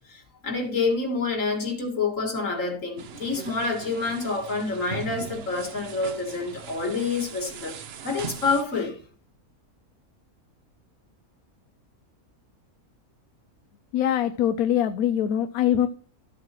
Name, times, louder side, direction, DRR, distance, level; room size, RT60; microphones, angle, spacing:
voice 1, 0.1-9.0, left 4 dB, 60° left, 2.4 m, -27 dB
sound 1, 3.0-8.6, right 7 dB, 55° right, 0.8 m, -40 dB
voice 2, 13.9-15.9, left 10 dB, 80° left, 1.1 m, -23 dB
13.5 x 7.5 x 3.0 m
omnidirectional pair, 1.5 m